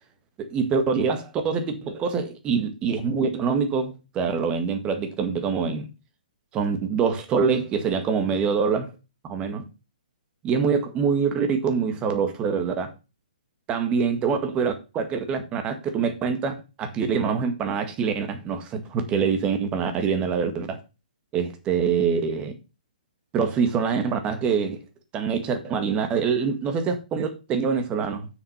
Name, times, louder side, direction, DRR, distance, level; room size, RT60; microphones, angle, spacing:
voice 1, 0.4-5.9 6.5-8.9 9.2-9.6 10.4-12.9 13.7-20.8 21.3-22.5 23.3-24.8 25.1-28.3, right 6 dB, 20° right, 1.8 m, -25 dB
7.2 x 6.5 x 5.7 m
hypercardioid pair, 140°, 5 cm